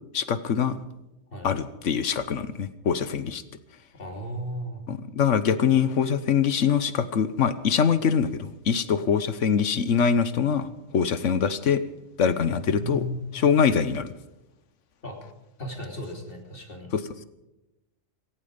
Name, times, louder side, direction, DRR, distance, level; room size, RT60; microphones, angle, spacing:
voice 1, 0.1-0.8 1.4-3.4 4.9-11.8 12.2-13.0 13.4-14.1 16.9-17.2, left 7 dB, 85° left, 14 dB, 1.3 m, -23 dB
voice 2, 4.0-4.8 12.5-13.3 15.0-15.2 15.6-16.9, equal, 50° left, 2 dB, 3.3 m, -35 dB
17.0 x 16.0 x 5.2 m, 0.97 s
omnidirectional pair, 1.2 m